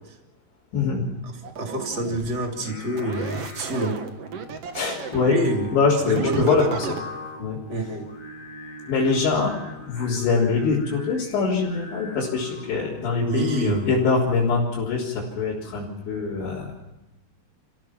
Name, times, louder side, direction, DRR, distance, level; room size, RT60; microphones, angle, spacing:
voice 1, 0.7-1.0 4.7-5.3 5.7-6.9 7.4-7.6 8.9-9.5 9.9-16.7, left 4 dB, 85° left, -7 dB, 5.9 m, -23 dB
sound 1, 1.4-2.3 2.9-5.4 6.0-7.0, right 6 dB, 70° right, 1.4 m, -33 dB
voice 2, 1.5-4.0 5.3-5.8 6.0-6.6 7.7-8.1 13.2-13.8, right 1 dB, 25° right, 2 dB, 3.0 m, -27 dB
Singing, 2.5-14.7, left 2 dB, 50° left, 0.9 m, -41 dB
29.0 x 16.0 x 6.1 m, 1.0 s
omnidirectional pair, 5.0 m